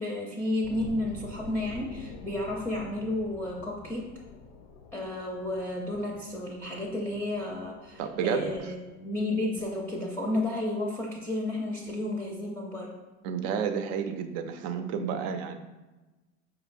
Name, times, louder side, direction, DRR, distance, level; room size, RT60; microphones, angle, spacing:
voice 1, 0.0-4.2 4.9-12.9, left 1 dB, 5° left, -1 dB, 0.5 m, -32 dB
sound 1, 0.6-11.6 12.1-12.2, left 3 dB, 65° left, 0.6 m, -48 dB
voice 2, 8.0-8.5 13.2-15.6, right 7 dB, 70° right, 7 dB, 0.6 m, -31 dB
4.9 x 3.0 x 2.5 m, 1.1 s
hypercardioid pair, 80°, 37 cm